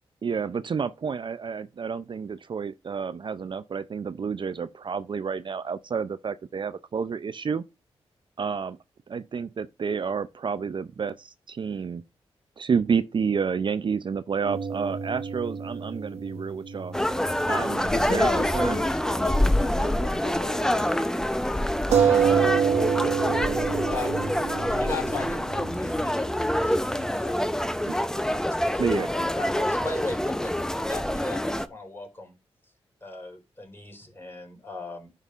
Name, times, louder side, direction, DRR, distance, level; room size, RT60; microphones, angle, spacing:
voice 1, 0.2-7.6 8.4-8.8 9.1-12.0 12.6-16.9 17.5-18.8 21.9-22.5 27.9-28.0 28.8-29.1, right 6 dB, 45° right, 0.4 m, -30 dB
sound 1, 14.4-18.3 18.6-18.7 21.9-27.1, right 7 dB, 90° right, 1.0 m, -28 dB
sound 2, 16.9-31.7, left 1 dB, 5° left, 0.6 m, -26 dB
voice 2, 17.9-21.1, left 4 dB, 45° left, 1.0 m, -34 dB
voice 3, 23.9-26.3 26.7-27.4 28.7-32.3 33.0-35.1, left 2 dB, 20° left, 3.9 m, -37 dB
11.0 x 5.3 x 2.5 m
supercardioid pair, 50°, 11 cm